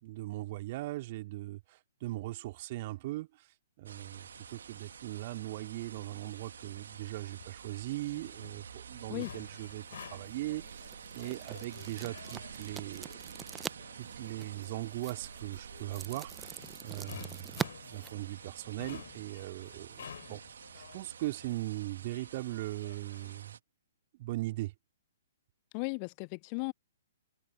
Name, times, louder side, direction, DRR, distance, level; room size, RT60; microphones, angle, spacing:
voice 1, 0.0-3.5 3.8-13.4 13.9-20.4 20.7-23.6 24.1-24.7, right 17 dB, 35° right, 3.0 m, -40 dB
sound 1, 3.9-23.4, left 8 dB, 55° left, 4.2 m, -53 dB
sound 2, 3.9-23.6, right 7 dB, 55° right, 1.9 m, -49 dB
sound 3, 9.8-18.9, right 6 dB, 10° right, 0.9 m, -44 dB
voice 2, 25.7-26.7, left 38 dB, 30° left, 0.7 m, -36 dB
figure-of-eight pair, 120°, 0 cm